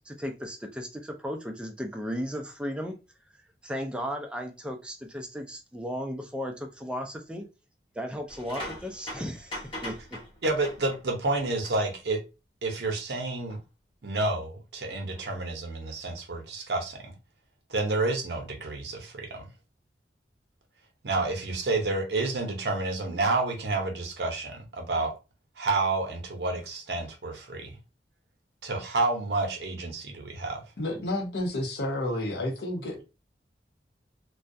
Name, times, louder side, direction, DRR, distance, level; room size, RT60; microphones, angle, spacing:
voice 1, 0.1-3.0 3.6-7.5 7.9-10.2, equal, 5° right, 0.3 m, -35 dB
sound 1, 8.3-11.2 11.6-11.9 13.5-13.6 15.1-15.4, left 1 dB, 30° left, 1.0 m, -41 dB
voice 2, 10.4-12.2 12.6-13.6 14.0-17.1 17.7-19.5 21.0-25.1 25.6-27.8 28.6-30.6, right 3 dB, 70° right, 0.7 m, -29 dB
voice 3, 30.8-33.0, left 1 dB, 65° left, 0.7 m, -30 dB
2.3 x 2.1 x 2.5 m
head